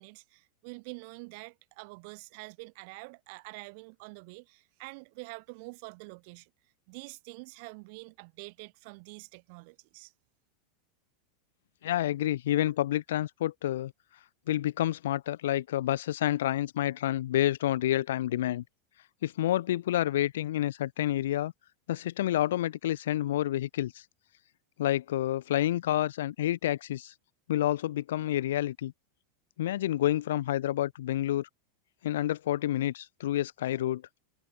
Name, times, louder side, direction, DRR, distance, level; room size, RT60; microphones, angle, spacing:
voice 1, 0.0-6.5 6.9-10.1, right 31 dB, 45° right, 7.9 m, -46 dB
voice 2, 11.8-13.9 14.5-18.6 19.2-21.5 21.9-24.0 24.8-27.1 27.5-28.9 29.6-31.5 32.0-34.0, left 13 dB, 85° left, 1.7 m, -29 dB
supercardioid pair, 170°, 0 cm